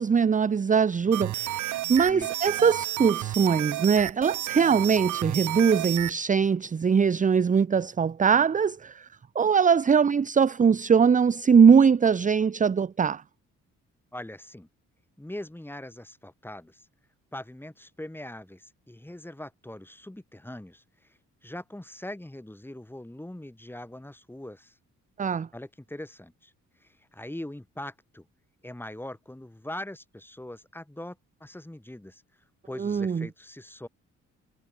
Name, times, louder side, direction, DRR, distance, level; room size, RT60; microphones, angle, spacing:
voice 1, 0.0-9.1 9.3-13.2 25.2-25.5 32.8-33.3, right 6 dB, 25° right, 0.7 m, -22 dB
sound 1, 1.1-6.1, right 15 dB, 80° right, 1.2 m, -31 dB
voice 2, 2.0-2.5 14.1-14.7 15.2-16.9 17.3-20.8 21.4-24.7 25.5-26.5 26.8-28.3 28.6-32.2 32.6-33.9, left 1 dB, 5° left, 7.7 m, -41 dB
cardioid pair, 90°, 30 cm